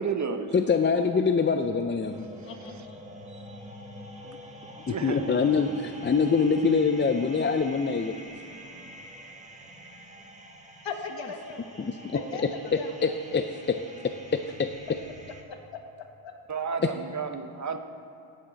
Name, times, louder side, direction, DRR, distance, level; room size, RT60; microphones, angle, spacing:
voice 1, 0.0-0.7 4.9-5.4 16.5-17.8, right 5 dB, 35° right, 7 dB, 0.8 m, -31 dB
voice 2, 0.5-2.3 4.9-8.1 11.8-12.2 12.7-13.8 14.3-14.7 16.8-16.9, left 5 dB, 25° left, 7 dB, 0.4 m, -25 dB
sound 1, 2.0-15.4, right 1 dB, 15° right, 1.4 m, -46 dB
voice 3, 2.5-3.0 10.8-11.6 12.3-12.9 15.5-15.8 16.2-16.4, left 5 dB, 60° left, 4 dB, 1.4 m, -39 dB
17.5 x 8.7 x 4.0 m, 2.6 s
cardioid pair, 85°, 49 cm